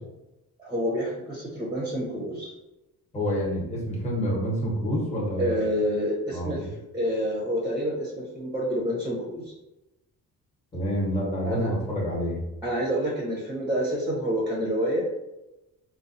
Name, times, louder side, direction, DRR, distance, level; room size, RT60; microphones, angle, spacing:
voice 1, 0.6-2.5 5.4-6.7 6.9-9.5 11.4-11.7 12.6-15.0, equal, 10° right, -5 dB, 0.8 m, -28 dB
voice 2, 3.1-5.6 6.3-6.7 10.7-12.4, equal, 20° left, -4 dB, 1.1 m, -28 dB
3.9 x 2.3 x 2.6 m, 0.97 s
cardioid pair, 130°, 37 cm